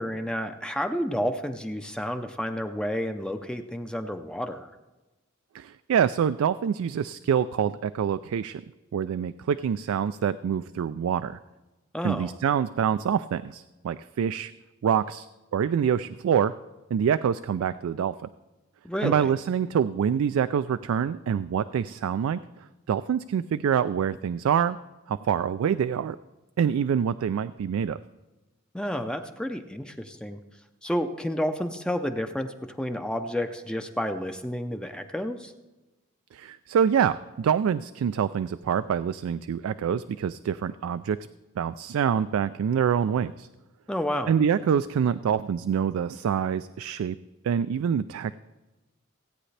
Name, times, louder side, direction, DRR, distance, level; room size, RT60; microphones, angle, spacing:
voice 1, 0.0-4.7 11.9-12.3 18.8-19.3 28.7-30.4 30.8-35.5 43.9-44.3, equal, 5° left, 6 dB, 0.4 m, -30 dB
voice 2, 5.5-8.6 8.9-11.4 12.0-14.5 14.8-15.3 15.5-16.5 16.9-18.1 19.0-22.4 22.9-24.8 25.1-26.2 26.6-28.0 36.3-41.2 41.6-43.5 44.3-47.2 47.4-48.4, right 8 dB, 90° right, 13 dB, 0.3 m, -26 dB
16.5 x 8.7 x 3.3 m, 1.1 s
head